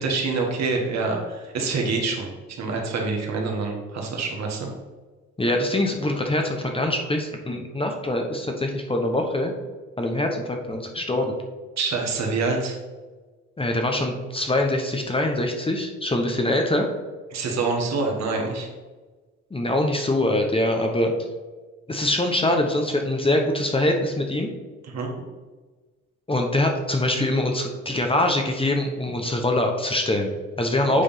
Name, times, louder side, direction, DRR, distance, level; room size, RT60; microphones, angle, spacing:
voice 1, 0.0-2.3 2.6-4.7 11.8-12.8 17.3-18.7 24.9-25.1 30.8-30.9, right 3 dB, 60° right, 0 dB, 1.8 m, -26 dB
voice 2, 5.4-9.5 10.0-11.4 13.6-16.9 19.5-21.1 21.9-24.5 26.3-31.0, left 1 dB, 20° left, 3 dB, 1.1 m, -23 dB
8.4 x 3.5 x 5.8 m, 1.3 s
cardioid pair, 90°, 30 cm